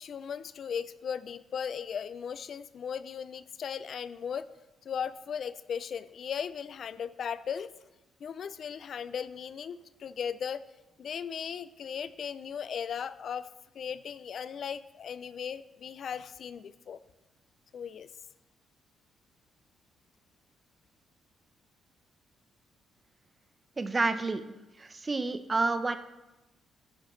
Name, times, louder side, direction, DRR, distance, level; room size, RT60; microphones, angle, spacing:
voice 1, 0.0-4.5 4.8-7.7 8.2-10.6 11.0-13.5 13.7-17.0 17.7-18.1, left 7 dB, 55° left, 15 dB, 0.4 m, -37 dB
voice 2, 23.8-24.4 24.8-26.0, right 3 dB, 25° right, 10 dB, 0.7 m, -29 dB
10.5 x 10.5 x 3.2 m, 1.0 s
cardioid pair, 90°, 0 cm